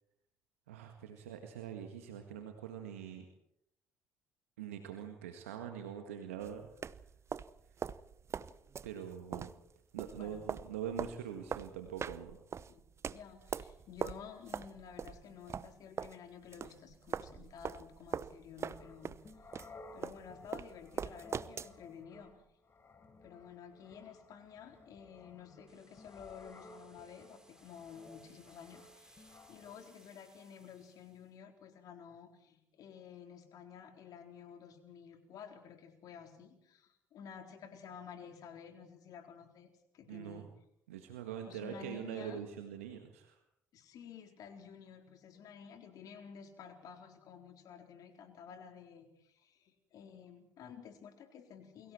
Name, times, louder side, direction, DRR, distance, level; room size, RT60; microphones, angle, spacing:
voice 1, 0.7-3.2 4.6-6.7 8.8-9.5 9.9-12.4 40.1-40.5 40.9-43.4, right 8 dB, 80° right, 5 dB, 1.8 m, -43 dB
sound 1, 6.4-16.2 16.5-21.8, right 6 dB, 40° right, 0.9 m, -42 dB
voice 2, 13.1-19.1 19.9-22.3 23.2-40.4 41.5-42.4 43.7-51.9, left 7 dB, 60° left, 5 dB, 4.1 m, -52 dB
sound 2, 18.6-29.8, left 2 dB, 35° left, 3.8 m, -57 dB
sound 3, 25.7-31.3, right 1 dB, 10° right, 4.1 m, -65 dB
29.5 x 23.5 x 4.5 m, 0.75 s
hypercardioid pair, 50°, 7 cm